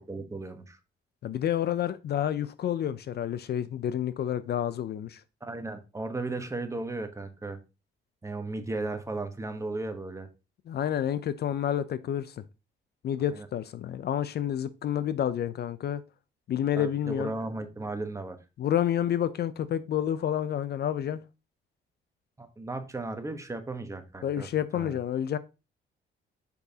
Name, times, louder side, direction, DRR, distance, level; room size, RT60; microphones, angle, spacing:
voice 1, 0.1-0.8 5.4-7.6 8.2-10.3 13.3-13.5 16.8-18.4 22.4-24.5 24.7-25.0, right 2 dB, 15° right, 1.0 m, -35 dB
voice 2, 1.2-5.2 10.7-12.4 13.0-16.0 16.5-17.3 18.6-21.2 24.2-25.4, left 10 dB, 55° left, 0.5 m, -29 dB
6.9 x 4.9 x 2.8 m
cardioid pair, 90°, 20 cm